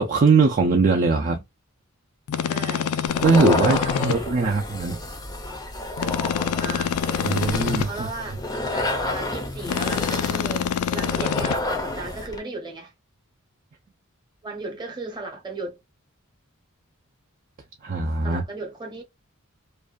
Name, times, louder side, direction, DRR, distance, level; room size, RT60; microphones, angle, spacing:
voice 1, 0.0-1.4 3.2-5.0 7.2-8.1 17.8-18.4, right 4 dB, 40° right, 0.4 m, -21 dB
sound 1, 2.3-4.2 6.0-7.9 9.7-11.6, left 8 dB, 85° left, 0.3 m, -26 dB
voice 2, 2.5-2.9 3.5-4.6 6.6-7.1 7.9-8.4 8.7-12.9 14.4-15.8 18.2-19.0, right 3 dB, 20° right, 0.8 m, -35 dB
sound 2, 3.1-12.4, left 2 dB, 15° left, 0.5 m, -30 dB
2.6 x 2.2 x 2.2 m
head